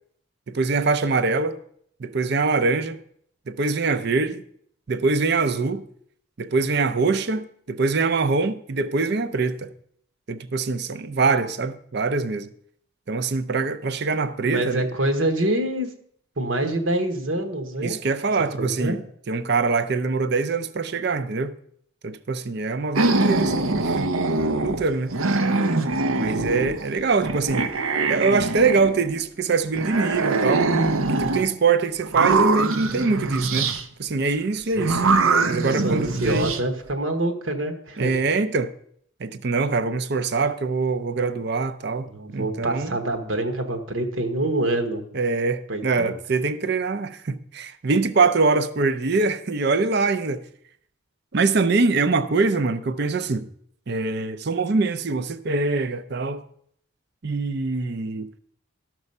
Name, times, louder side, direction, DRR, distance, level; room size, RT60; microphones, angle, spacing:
voice 1, 0.5-1.6 2.0-3.0 3.5-4.4 4.9-5.8 6.4-9.7 10.3-12.5 13.1-14.9 17.8-19.0 19.3-21.5 22.0-24.1 24.6-25.1 26.1-27.8 28.1-30.8 31.1-33.7 34.0-35.0 35.5-36.6 38.0-38.7 39.2-43.0 45.1-50.4 51.3-53.5 53.9-56.4 57.2-58.3, right 4 dB, 50° right, 0.5 m, -23 dB
voice 2, 14.4-15.9 16.4-18.0 18.6-18.9 34.8-35.0 35.2-38.1 42.1-45.0 45.7-46.1, right 1 dB, 70° right, 1.2 m, -26 dB
sound 1, 23.0-24.8 25.1-26.9 27.2-29.2 29.8-31.5 32.0-33.8 34.8-36.6, right 3 dB, 85° right, 0.8 m, -23 dB
13.0 x 6.1 x 5.4 m
head